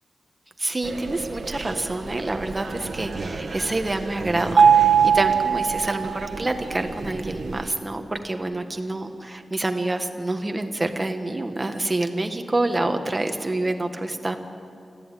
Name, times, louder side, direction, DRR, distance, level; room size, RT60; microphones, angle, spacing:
voice 1, 0.6-14.4, right 2 dB, 20° right, 6 dB, 1.5 m, -27 dB
sound 1, 0.8-7.7, right 3 dB, 65° right, 1.6 m, -35 dB
Mallet percussion, 4.6-6.5, right 7 dB, 85° right, 1.4 m, -18 dB
25.5 x 15.0 x 9.2 m, 2.5 s
wide cardioid pair, 150°, 0 cm